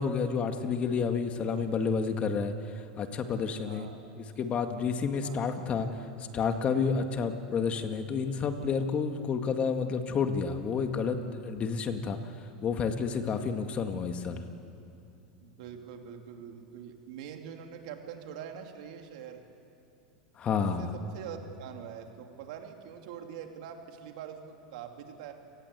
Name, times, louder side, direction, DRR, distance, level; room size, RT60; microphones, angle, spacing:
voice 1, 0.0-2.5 3.0-3.9 4.2-5.9 6.3-12.2 12.6-14.4 20.4-20.9, left 5 dB, 30° left, 6 dB, 1.9 m, -30 dB
voice 2, 3.6-4.0 5.2-5.4 15.4-19.4 20.6-25.3, right 8 dB, 70° right, 4 dB, 2.8 m, -44 dB
29.5 x 18.5 x 8.3 m, 2.7 s
supercardioid pair, 120°, 4 cm